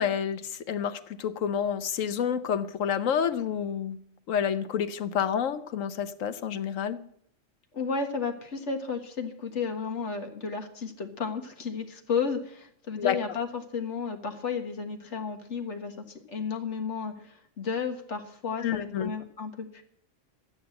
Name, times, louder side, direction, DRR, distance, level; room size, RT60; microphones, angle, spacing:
voice 1, 0.0-4.0 4.3-7.0 13.0-13.2 18.6-19.1, left 8 dB, 85° left, 12 dB, 1.2 m, -29 dB
voice 2, 7.7-19.8, left 5 dB, 65° left, 5 dB, 1.7 m, -33 dB
13.0 x 9.1 x 7.7 m, 0.66 s
omnidirectional pair, 1.3 m